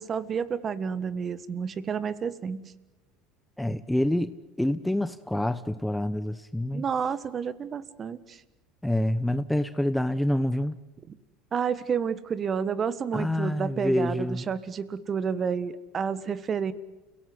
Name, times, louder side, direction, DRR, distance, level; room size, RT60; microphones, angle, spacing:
voice 1, 0.0-2.7 6.7-8.4 11.1-11.2 11.5-16.7, right 6 dB, 35° right, 16 dB, 1.5 m, -30 dB
voice 2, 3.6-6.8 8.8-10.7 13.1-14.4, left 1 dB, 5° left, 13 dB, 1.0 m, -27 dB
29.5 x 17.5 x 9.4 m, 1.1 s
hypercardioid pair, 80°, 0 cm